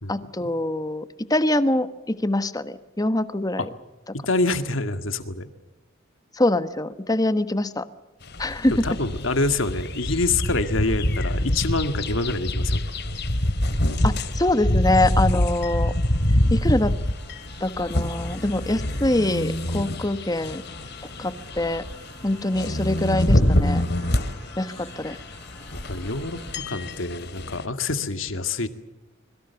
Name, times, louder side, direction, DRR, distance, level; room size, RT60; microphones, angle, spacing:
voice 1, 0.1-1.0 1.3-3.7 6.3-7.8 8.4-8.7 14.0-15.9 16.5-16.9 17.6-20.6 21.2-21.8 22.2-23.8 24.6-25.2, left 1 dB, 20° left, 12 dB, 1.3 m, -24 dB
voice 2, 4.1-5.5 8.8-12.8 25.7-28.7, left 3 dB, 80° left, 9 dB, 2.0 m, -26 dB
sound 1, 8.2-27.7, left 1 dB, 55° left, 2.5 m, -26 dB
sound 2, 14.7-26.6, left 1 dB, ahead, 5.4 m, -49 dB
25.5 x 22.5 x 7.1 m, 1.1 s
head